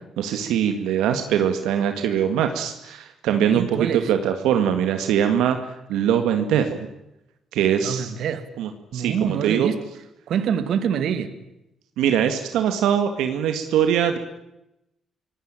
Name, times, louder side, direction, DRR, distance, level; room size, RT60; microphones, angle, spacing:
voice 1, 0.2-6.8 7.5-8.1 8.6-9.7 12.0-14.2, right 9 dB, 90° right, 7 dB, 2.0 m, -22 dB
voice 2, 3.3-4.1 7.8-8.5 8.9-9.8 10.3-11.4, right 8 dB, 70° right, 11 dB, 2.4 m, -25 dB
26.0 x 18.0 x 9.1 m, 0.86 s
cardioid pair, 90°, 0 cm